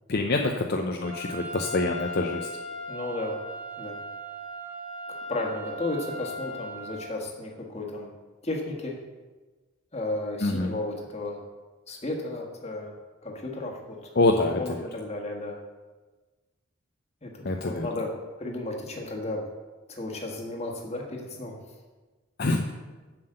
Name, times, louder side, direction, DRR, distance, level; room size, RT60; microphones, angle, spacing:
voice 1, 0.1-2.5 10.4-10.8 14.2-14.8 17.4-17.9 22.4-22.7, left 2 dB, 50° left, 3 dB, 0.6 m, -26 dB
Trumpet, 1.0-7.1, equal, 70° right, 2.0 m, -38 dB
voice 2, 2.9-3.3 3.8-4.0 5.1-8.1 8.4-8.9 9.9-11.4 11.9-12.9 13.2-14.1 14.6-15.6 17.2-18.1 18.4-19.4 19.9-21.6, left 2 dB, 30° left, 1 dB, 1.5 m, -33 dB
7.5 x 6.1 x 7.9 m, 1.3 s
head